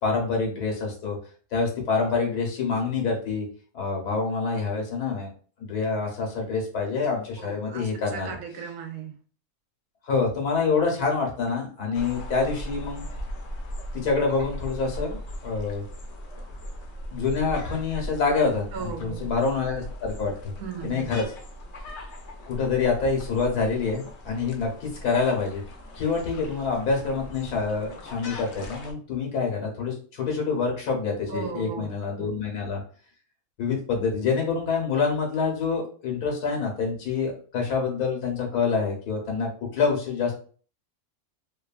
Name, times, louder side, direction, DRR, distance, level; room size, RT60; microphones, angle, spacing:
voice 1, 0.0-1.2 1.5-3.4 3.7-5.3 5.6-8.3 10.0-13.0 13.9-15.8 17.1-20.3 20.8-21.2 22.5-25.6 25.9-32.8 33.6-40.3, left 4 dB, 85° left, 0 dB, 1.5 m, -26 dB
voice 2, 7.4-9.1 18.7-19.3 20.6-21.1 31.3-32.5, right 6 dB, 75° right, 5 dB, 1.1 m, -37 dB
sound 1, 11.9-28.9, equal, 60° left, 0.8 m, -39 dB
3.1 x 2.3 x 2.4 m, 0.42 s
omnidirectional pair, 1.6 m